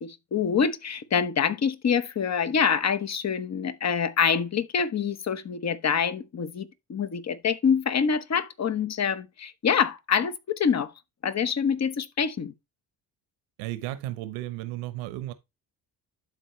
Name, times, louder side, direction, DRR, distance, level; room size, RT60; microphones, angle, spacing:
voice 1, 0.0-10.9 11.2-12.5, left 6 dB, 35° left, 1.1 m, -26 dB
voice 2, 13.6-15.3, right 15 dB, 85° right, 1.1 m, -34 dB
12.0 x 4.0 x 3.2 m
supercardioid pair, 65°, 44 cm